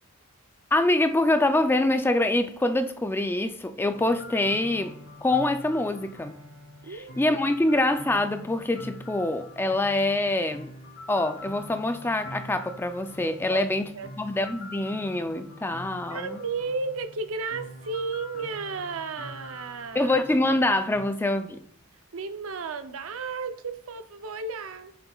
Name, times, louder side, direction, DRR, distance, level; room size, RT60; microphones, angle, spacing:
voice 1, 0.7-5.0 5.2-6.4 7.2-10.7 11.1-13.9 14.2-16.4 19.9-21.6, left 2 dB, 10° left, 0.3 m, -25 dB
sound 1, 3.9-21.0, left 1 dB, 60° left, 2.1 m, -44 dB
voice 2, 6.8-7.2 13.5-14.1 16.1-20.1 22.1-24.9, right 4 dB, 80° right, 0.6 m, -33 dB
9.2 x 6.9 x 2.3 m
head